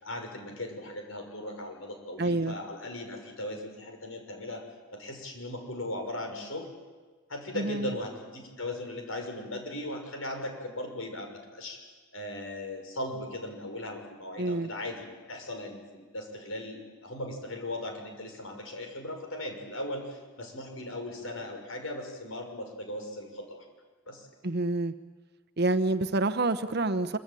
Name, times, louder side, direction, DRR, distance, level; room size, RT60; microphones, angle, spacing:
voice 1, 0.0-4.7 4.9-6.7 7.3-11.8 12.1-23.6 24.1-24.3, left 1 dB, 70° left, 4 dB, 6.1 m, -38 dB
voice 2, 2.2-2.5 7.5-7.9 14.4-14.7 24.4-24.9 25.6-27.2, right 2 dB, 50° right, 8 dB, 1.0 m, -27 dB
25.5 x 24.5 x 9.1 m, 1.4 s
head